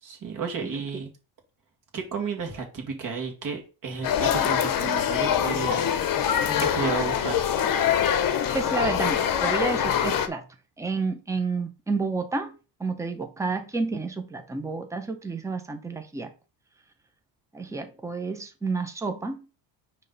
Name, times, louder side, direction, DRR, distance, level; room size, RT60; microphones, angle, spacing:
voice 1, 0.0-1.1 1.9-5.9 6.6-7.4, right 5 dB, 40° right, 2.0 m, -32 dB
sound 1, 4.0-10.3, left 9 dB, 45° left, 0.8 m, -24 dB
voice 2, 8.5-10.5 10.8-16.3 17.5-19.5, right 4 dB, 5° right, 0.7 m, -30 dB
9.8 x 3.4 x 3.9 m
cardioid pair, 165°, 49 cm